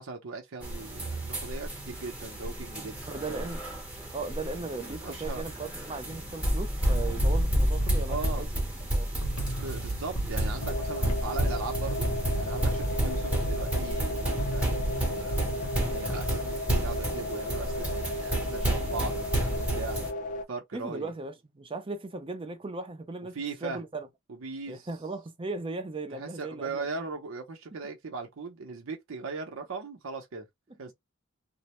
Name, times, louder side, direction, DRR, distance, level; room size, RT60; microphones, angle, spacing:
voice 1, 0.0-3.5 4.6-5.4 8.1-8.5 9.6-15.5 15.9-20.0 20.5-21.1 23.3-23.8 24.3-24.9 26.1-30.5 30.8-30.9, right 4 dB, 75° right, 0.6 m, -39 dB
sound 1, 0.6-20.1, right 1 dB, 5° right, 0.9 m, -31 dB
voice 2, 3.1-3.6 4.1-8.5 8.9-9.1 20.7-23.4 23.6-24.1 24.7-27.1, right 3 dB, 25° right, 0.5 m, -37 dB
sound 2, 6.9-16.8, right 1 dB, 85° left, 1.0 m, -36 dB
sound 3, 10.6-20.4, left 1 dB, 40° left, 0.5 m, -35 dB
2.5 x 2.1 x 2.9 m
head